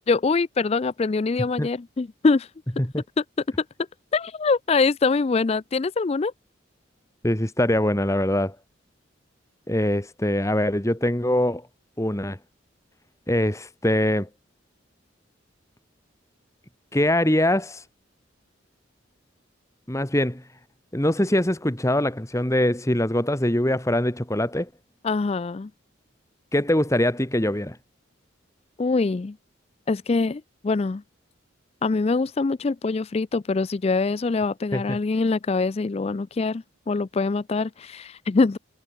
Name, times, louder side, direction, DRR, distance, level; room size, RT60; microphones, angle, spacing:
voice 1, 0.1-2.5 3.2-3.3 4.1-6.3 25.0-25.7 28.8-29.4 29.9-31.0 31.8-38.6, left 4 dB, 30° left, 0.4 m, -24 dB
voice 2, 7.2-8.6 9.7-11.6 12.0-12.4 13.3-14.3 16.9-17.8 19.9-20.4 20.9-24.7 26.5-27.8 34.7-35.0, left 1 dB, 15° left, 1.8 m, -23 dB
head